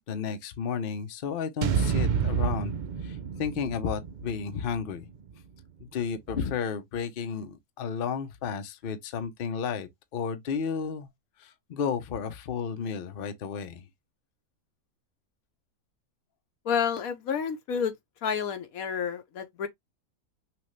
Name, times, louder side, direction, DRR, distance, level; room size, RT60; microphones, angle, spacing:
voice 1, 0.1-2.7 3.0-5.1 5.8-11.1 11.4-13.9, left 6 dB, 50° left, 0.8 m, -32 dB
sound 1, 1.6-5.8, right 6 dB, 90° right, 0.4 m, -30 dB
voice 2, 16.6-17.9 18.2-19.7, left 7 dB, 75° left, 1.2 m, -29 dB
5.9 x 2.4 x 3.2 m
omnidirectional pair, 1.5 m